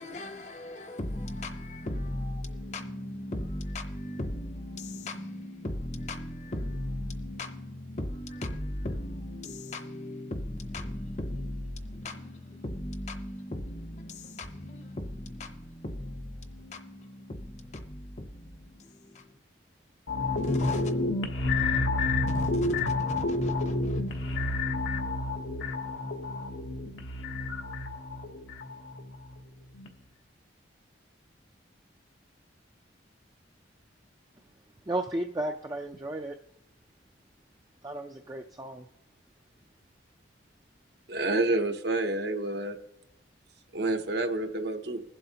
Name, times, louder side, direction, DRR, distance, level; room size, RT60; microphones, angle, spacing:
voice 1, 0.0-19.4 20.4-20.9 22.3-24.5, left 1 dB, 40° left, 0.7 m, -37 dB
sound 1, 20.1-29.4 29.7-29.9, left 2 dB, 85° left, 1.1 m, -30 dB
voice 2, 34.9-36.4 37.8-38.9, right 1 dB, 20° right, 0.4 m, -34 dB
voice 3, 41.1-42.8 43.7-45.0, right 2 dB, 60° right, 0.7 m, -28 dB
21.5 x 7.7 x 2.8 m
head